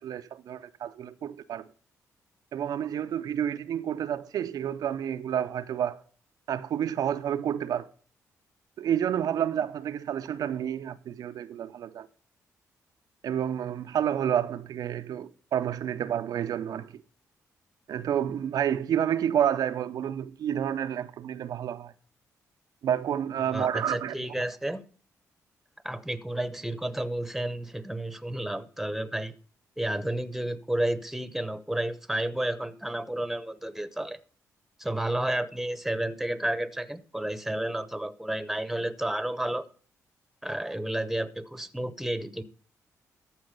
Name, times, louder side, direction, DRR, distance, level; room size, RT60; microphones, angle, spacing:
voice 1, 0.0-1.7 2.5-6.0 6.5-7.9 8.8-12.1 13.2-16.9 17.9-21.9 22.8-24.2, right 9 dB, 70° right, 0.5 m, -29 dB
voice 2, 23.4-24.8 25.8-29.3 29.8-34.2 34.8-39.7 40.4-42.4, right 1 dB, 5° right, 0.9 m, -31 dB
13.5 x 4.7 x 5.2 m
supercardioid pair, 65°, 7 cm